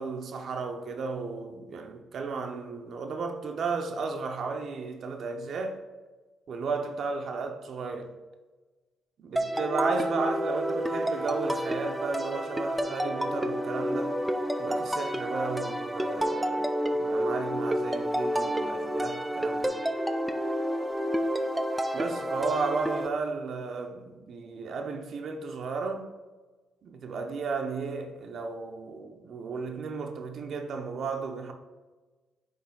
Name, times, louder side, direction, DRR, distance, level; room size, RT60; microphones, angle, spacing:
voice 1, 0.0-5.8 6.5-8.1 9.2-14.1 14.6-19.7 21.9-26.1 26.8-31.5, right 4 dB, 60° right, 0.7 m, -34 dB
sound 1, 9.4-23.1, equal, 5° right, 0.5 m, -29 dB
8.7 x 3.3 x 3.8 m
cardioid pair, 90°, 0 cm